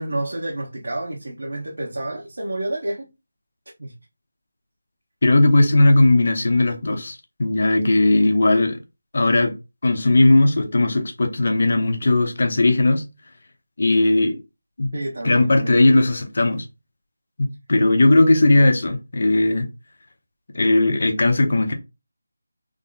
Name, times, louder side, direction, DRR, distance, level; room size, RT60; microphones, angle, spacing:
voice 1, 0.0-3.1 3.8-3.9 14.9-15.7, right 1 dB, 75° right, 1.1 m, -29 dB
voice 2, 5.2-8.8 9.1-9.5 9.8-13.0 13.8-14.4 14.8-14.9 15.2-16.7 17.4-19.7 20.5-21.7, left 2 dB, 45° left, 0.8 m, -17 dB
3.7 x 2.1 x 3.8 m
figure-of-eight pair, 175°, 0 cm